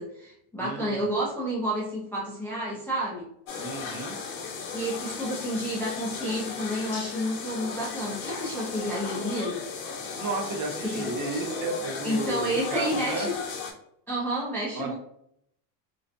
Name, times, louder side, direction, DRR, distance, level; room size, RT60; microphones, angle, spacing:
voice 1, 0.0-3.3 4.7-9.6 10.8-11.1 12.0-13.4 14.1-14.9, equal, 5° left, -7 dB, 0.4 m, -30 dB
voice 2, 0.6-1.0 3.6-4.2 10.2-13.3 14.7-14.9, right 3 dB, 40° right, 2 dB, 0.7 m, -33 dB
sound 1, 3.5-13.7, left 5 dB, 70° left, 0.8 m, -35 dB
2.4 x 2.3 x 2.4 m, 0.72 s
supercardioid pair, 120°, 50 cm